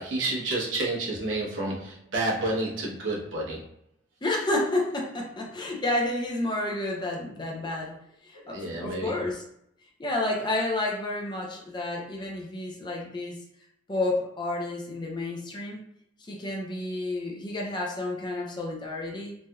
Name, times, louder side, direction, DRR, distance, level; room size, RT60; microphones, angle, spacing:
voice 1, 0.0-3.7 7.6-7.7 8.3-9.2, right 2 dB, 85° right, -3 dB, 0.9 m, -30 dB
voice 2, 4.2-7.9 8.2-9.4 10.0-13.4 13.9-15.8 16.3-19.3, left 2 dB, 25° left, -1 dB, 0.6 m, -30 dB
3.1 x 2.8 x 2.3 m, 0.73 s
head